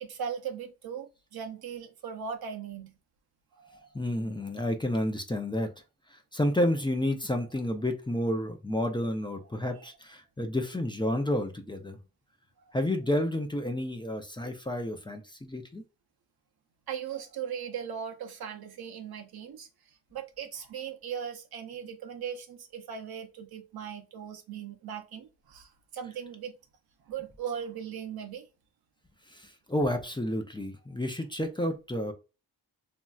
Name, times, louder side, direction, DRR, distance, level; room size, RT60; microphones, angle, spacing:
voice 1, 0.0-2.9 3.5-3.9 9.7-9.9 16.9-19.7 20.1-26.5 27.1-28.4, right 8 dB, 75° right, 0.7 m, -38 dB
voice 2, 3.9-5.7 6.3-12.0 12.7-15.8 29.3-32.1, left 1 dB, 15° left, 0.4 m, -30 dB
3.1 x 2.6 x 2.3 m
cardioid pair, 70°, 37 cm